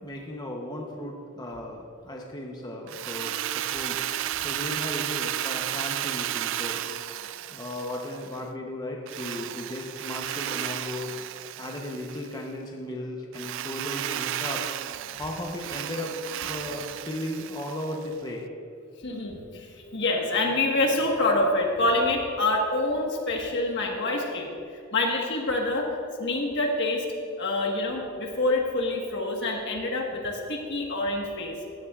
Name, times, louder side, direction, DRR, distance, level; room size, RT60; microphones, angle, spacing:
voice 1, 0.0-6.8 7.5-11.1 11.6-14.7 15.2-16.2 16.4-18.5, left 1 dB, 20° left, 0 dB, 0.8 m, -36 dB
Drill, 2.9-8.4 9.1-12.4 13.3-18.1, right 12 dB, 65° right, 0.3 m, -33 dB
voice 2, 19.0-24.5 24.9-25.9 26.2-27.0 27.4-31.6, left 2 dB, 60° left, 1 dB, 1.4 m, -26 dB
15.5 x 10.5 x 2.4 m, 2.5 s
head